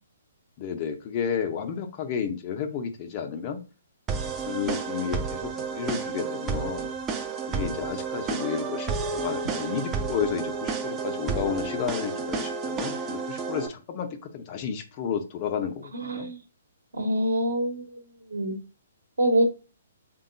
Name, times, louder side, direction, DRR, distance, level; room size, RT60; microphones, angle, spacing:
voice 1, 0.6-3.6 4.5-6.9 7.5-16.3, left 7 dB, 35° left, 6 dB, 0.5 m, -32 dB
sound 1, 4.1-13.7, right 5 dB, 20° right, 0.4 m, -31 dB
voice 2, 15.9-16.4 16.9-17.9 18.3-18.5 19.2-19.4, right 1 dB, 75° right, 2 dB, 1.0 m, -25 dB
3.5 x 2.2 x 3.8 m, 0.33 s
figure-of-eight pair, 125°, 0 cm